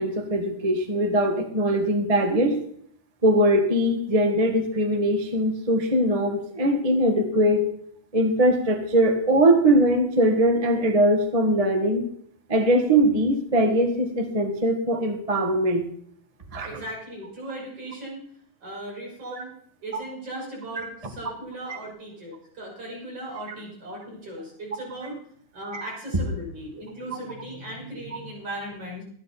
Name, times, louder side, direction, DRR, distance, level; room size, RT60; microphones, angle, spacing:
voice 1, 0.0-2.6 3.2-7.7 8.1-12.0 12.5-15.8 16.5-16.8 20.7-20.8 25.7-25.8, right 1 dB, 30° right, 4 dB, 0.6 m, -21 dB
voice 2, 16.6-18.3 18.6-19.5 19.8-25.2 25.5-29.0, right 1 dB, 45° right, -2 dB, 6.1 m, -37 dB
13.0 x 11.5 x 4.2 m, 0.63 s
omnidirectional pair, 3.6 m